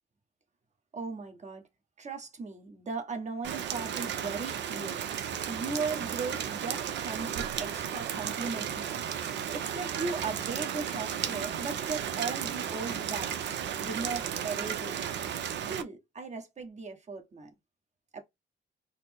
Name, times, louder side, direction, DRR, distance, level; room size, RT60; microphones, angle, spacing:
voice 1, 0.9-1.6 2.0-5.1 5.5-9.0 9.5-15.0 15.5-17.5 18.1-18.2, right 4 dB, 35° right, 1.1 m, -37 dB
Rain, 3.4-15.8, right 9 dB, 65° right, 0.6 m, -34 dB
4.1 x 2.0 x 3.5 m
cardioid pair, 90°, 20 cm